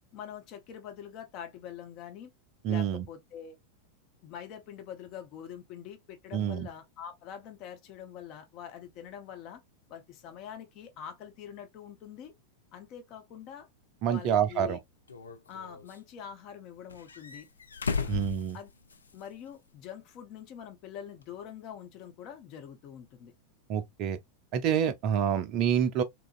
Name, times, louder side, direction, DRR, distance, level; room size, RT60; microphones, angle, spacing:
voice 1, 0.1-2.3 2.7-3.6 4.2-9.6 9.9-12.3 12.7-13.7 14.1-14.8 15.5-17.5 18.0-18.3 18.5-18.7 19.1-23.3, left 9 dB, 40° left, 0.7 m, -45 dB
voice 2, 2.6-3.1 6.3-6.7 14.0-14.8 18.1-18.6 23.7-24.2 24.5-26.0, right 8 dB, 40° right, 0.4 m, -27 dB
sound 1, 14.1-14.2 15.1-16.0 16.9-19.2 19.5-19.6 21.2-21.3, left 4 dB, 75° left, 0.4 m, -36 dB
2.9 x 2.4 x 2.3 m
figure-of-eight pair, 90°, 0 cm